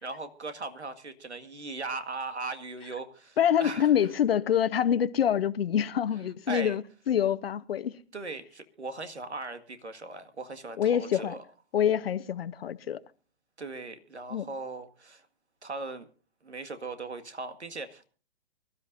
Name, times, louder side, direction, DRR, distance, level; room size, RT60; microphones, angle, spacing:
voice 1, 0.0-3.9 6.5-6.8 8.1-11.4 13.6-15.3 15.6-16.1 16.4-18.1, right 3 dB, 85° right, 2.0 m, -38 dB
voice 2, 3.4-8.0 10.8-11.3 11.7-13.0 14.3-14.5, left 9 dB, 60° left, 1.0 m, -26 dB
24.5 x 13.0 x 2.6 m
figure-of-eight pair, 125°, 33 cm